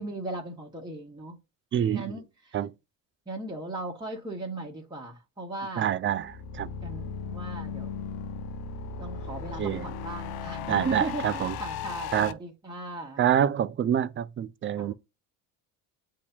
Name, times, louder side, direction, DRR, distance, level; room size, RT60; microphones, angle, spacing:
voice 1, 0.0-1.4 1.9-2.6 3.3-5.9 6.8-7.9 8.9-13.2 14.8-14.9, right 2 dB, 10° right, 1.4 m, -37 dB
voice 2, 1.7-2.2 2.5-2.7 5.8-6.7 9.6-9.9 10.7-11.6 12.1-12.4 13.2-14.9, right 9 dB, 30° right, 0.4 m, -26 dB
sound 1, 6.2-12.3, left 6 dB, 70° left, 0.6 m, -36 dB
8.3 x 2.9 x 2.2 m
supercardioid pair, 80°, 39 cm